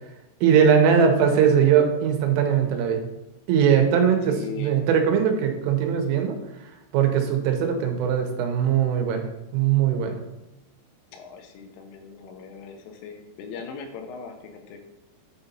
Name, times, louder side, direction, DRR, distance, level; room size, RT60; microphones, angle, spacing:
voice 1, 0.4-3.0 3.5-6.4 6.9-9.3 9.5-10.2, right 7 dB, 90° right, 4 dB, 3.4 m, -20 dB
voice 2, 4.3-4.8 11.1-14.9, left 5 dB, 90° left, 5 dB, 3.3 m, -39 dB
10.5 x 4.0 x 4.2 m, 0.98 s
omnidirectional pair, 5.8 m